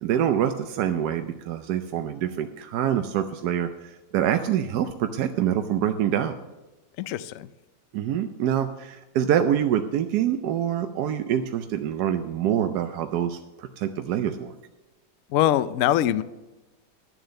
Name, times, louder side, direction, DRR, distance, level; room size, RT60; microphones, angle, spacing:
voice 1, 0.0-6.3 7.9-14.5, right 10 dB, 70° right, 7 dB, 1.1 m, -25 dB
voice 2, 7.0-7.5 15.3-16.2, left 12 dB, 80° left, 15 dB, 0.7 m, -23 dB
11.0 x 7.9 x 6.5 m, 1.1 s
omnidirectional pair, 2.0 m